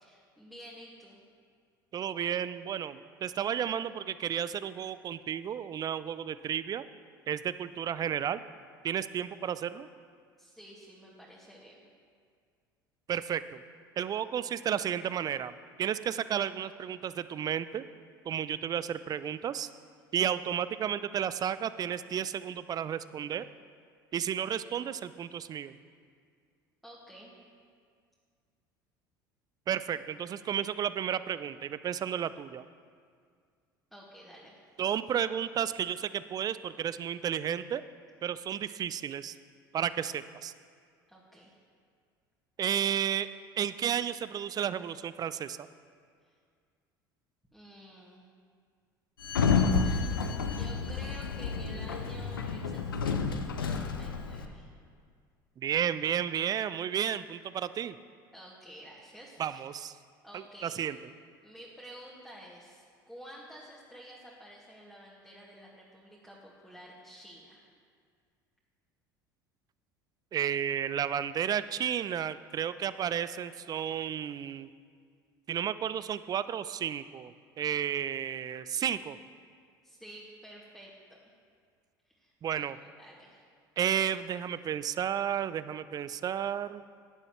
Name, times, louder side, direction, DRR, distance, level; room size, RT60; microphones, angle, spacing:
voice 1, 0.0-1.2 10.4-11.8 26.8-27.3 33.9-34.6 41.1-41.5 46.2-46.3 47.5-48.3 49.8-54.7 58.3-59.6 60.2-60.8 61.4-67.7 79.8-81.2 82.1-82.3 83.0-83.5, equal, ahead, -5 dB, 2.2 m, -51 dB
voice 2, 1.9-6.8 7.3-8.4 8.8-9.9 13.1-13.6 14.0-17.8 18.3-19.7 20.1-23.4 24.1-25.8 29.7-32.6 34.8-37.8 38.2-39.4 39.7-40.5 42.6-43.3 43.6-45.7 55.6-58.0 59.4-59.9 60.3-61.0 70.3-74.7 75.5-79.2 82.4-82.8 83.8-86.8, right 9 dB, 35° right, 15 dB, 0.5 m, -32 dB
Sliding door, 49.2-54.5, left 5 dB, 85° left, 0.8 m, -30 dB
16.5 x 10.5 x 3.2 m, 2.1 s
figure-of-eight pair, 65°, 11 cm